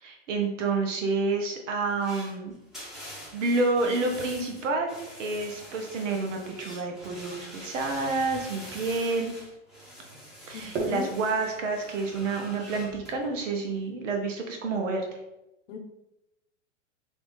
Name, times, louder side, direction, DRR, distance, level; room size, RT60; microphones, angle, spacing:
voice 1, 0.0-2.5 2.8-2.9 3.3-9.3 10.5-15.0, right 3 dB, 75° right, 3 dB, 0.9 m, -29 dB
sound 1, 1.9-13.1, equal, ahead, 1.0 m, -45 dB
sound 2, 7.7-9.2 10.1-13.9, right 4 dB, 50° right, 1.0 m, -41 dB
voice 2, 10.5-11.1 15.7-15.8, left 6 dB, 75° left, 4 dB, 0.8 m, -36 dB
3.1 x 2.6 x 3.1 m, 0.90 s
hypercardioid pair, 115°, 37 cm